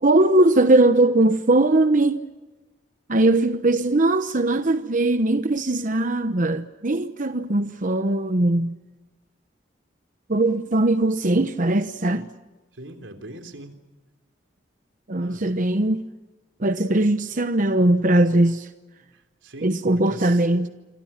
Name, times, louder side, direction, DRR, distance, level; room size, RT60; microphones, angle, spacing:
voice 1, 0.0-2.2 3.1-8.7 10.3-12.3 15.1-16.0 16.6-18.7 19.6-20.7, right 2 dB, 45° right, 1.0 m, -20 dB
voice 2, 12.7-13.8 15.2-15.5 19.4-20.5, right 2 dB, 90° right, 3.6 m, -41 dB
27.5 x 26.5 x 5.9 m
head